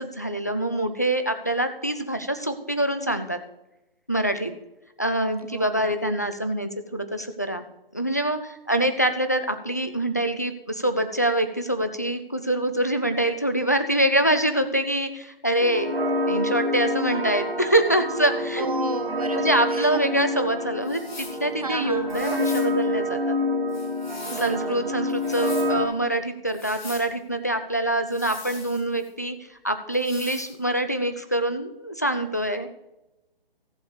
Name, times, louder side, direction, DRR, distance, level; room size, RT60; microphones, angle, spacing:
voice 1, 0.0-3.4 4.1-4.5 5.0-7.6 7.9-15.9 16.3-18.7 19.3-23.3 24.3-29.4 29.6-32.8, right 1 dB, 20° left, 8 dB, 0.3 m, -25 dB
voice 2, 5.4-5.9 18.6-20.1 21.6-22.2 24.3-24.9, right 5 dB, 40° right, 10 dB, 0.5 m, -33 dB
sound 1, 15.6-25.9, left 1 dB, 75° right, 1.9 m, -27 dB
sound 2, 20.8-21.4 22.1-22.7 23.7-24.6 25.1-25.7 26.5-27.1 28.1-29.1 29.9-30.5, left 3 dB, 50° left, 3.0 m, -41 dB
14.5 x 6.8 x 4.9 m, 0.94 s
figure-of-eight pair, 140°, 29 cm